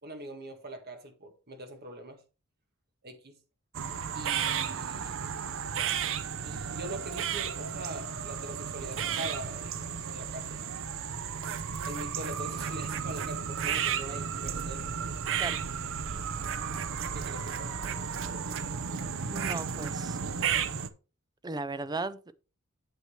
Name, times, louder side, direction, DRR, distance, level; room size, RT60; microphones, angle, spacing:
voice 1, 0.0-2.2 3.0-3.4 4.1-5.2 6.4-10.6 11.9-15.0 17.1-17.7, right 1 dB, 45° right, 1.7 m, -43 dB
sound 1, 3.7-20.9, right 7 dB, 60° right, 0.7 m, -33 dB
voice 2, 19.3-20.2 21.4-22.3, right 3 dB, 20° right, 0.5 m, -36 dB
8.2 x 7.9 x 3.1 m
head